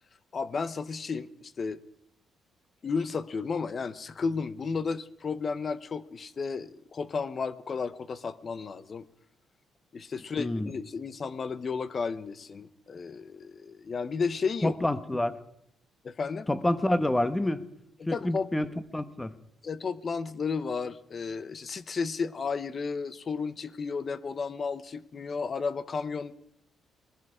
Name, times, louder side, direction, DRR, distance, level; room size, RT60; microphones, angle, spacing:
voice 1, 0.3-1.8 2.8-9.0 9.9-14.8 15.1-15.2 16.0-16.5 18.0-18.5 19.6-26.3, left 5 dB, 40° left, 15 dB, 0.8 m, -33 dB
voice 2, 10.4-10.7 14.6-15.4 16.5-17.6 18.1-18.7 18.9-19.3, left 1 dB, 10° left, 13 dB, 1.0 m, -27 dB
20.0 x 14.0 x 5.0 m, 0.77 s
cardioid pair, 90°, 0 cm